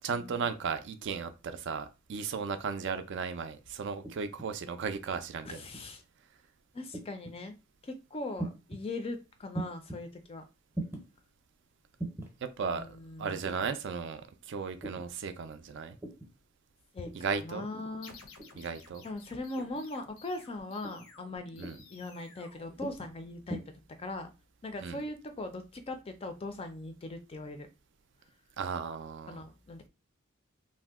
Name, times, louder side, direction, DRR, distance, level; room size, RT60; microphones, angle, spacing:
voice 1, 0.0-5.7 12.4-14.2 14.5-16.0 17.1-17.7 18.6-19.0 21.6-21.8 24.8-25.0 28.6-29.4, right 5 dB, 60° right, 0.4 m, -35 dB
sound 1, 4.0-4.5 5.4-5.9 6.9-7.4 8.4-8.8 9.5-10.0 10.7-11.1 12.0-12.3 13.4-13.8 14.8-15.1 16.0-16.3 17.1-17.4 18.4-18.7 19.6-19.9 20.8-21.1 21.6-21.9 22.8-23.1 23.5-23.6, right 2 dB, 10° right, 0.6 m, -40 dB
voice 2, 5.4-6.0 6.7-7.5 7.8-10.4 12.6-13.4 16.9-17.1 17.4-18.2 19.0-23.6 24.0-24.3 24.6-27.7 29.3-29.9, left 2 dB, 30° left, 0.4 m, -40 dB
sound 2, 18.0-23.4, left 4 dB, 85° left, 0.6 m, -55 dB
2.6 x 2.1 x 3.5 m
head